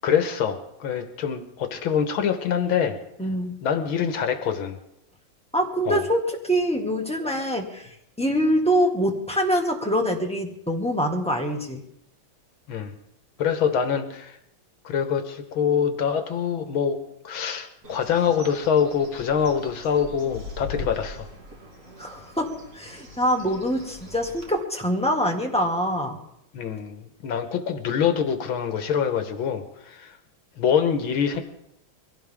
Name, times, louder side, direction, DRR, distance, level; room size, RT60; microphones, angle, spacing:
voice 1, 0.0-3.0 3.6-4.8 5.9-6.0 12.7-12.9 13.4-14.4 14.9-17.0 17.2-21.3 26.5-30.1 30.6-31.4, left 7 dB, 80° left, 7 dB, 2.0 m, -25 dB
voice 2, 3.2-3.5 5.5-11.8 22.0-26.2, equal, 5° left, 0 dB, 1.6 m, -25 dB
Bird, 17.8-24.5, left 2 dB, 40° right, 2.3 m, -41 dB
22.5 x 16.5 x 3.6 m, 0.78 s
omnidirectional pair, 2.2 m